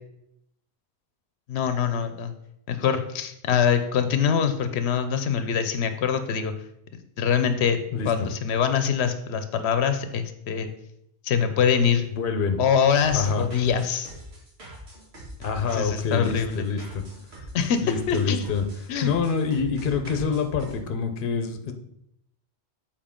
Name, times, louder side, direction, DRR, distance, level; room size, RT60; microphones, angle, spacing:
voice 1, 1.5-2.3 2.7-6.5 6.9-7.8 8.1-10.7 11.2-12.0 12.6-14.1 15.7-16.6 17.5-18.4 18.9-19.1, left 7 dB, 90° left, 9 dB, 0.9 m, -24 dB
voice 2, 7.9-8.3 12.2-12.6 13.1-13.4 15.4-17.0 17.8-18.6 19.0-21.7, left 5 dB, 55° left, 7 dB, 0.9 m, -26 dB
sound 1, 12.9-20.8, equal, 75° right, 2.0 m, -43 dB
7.1 x 4.5 x 3.7 m, 0.76 s
omnidirectional pair, 1.1 m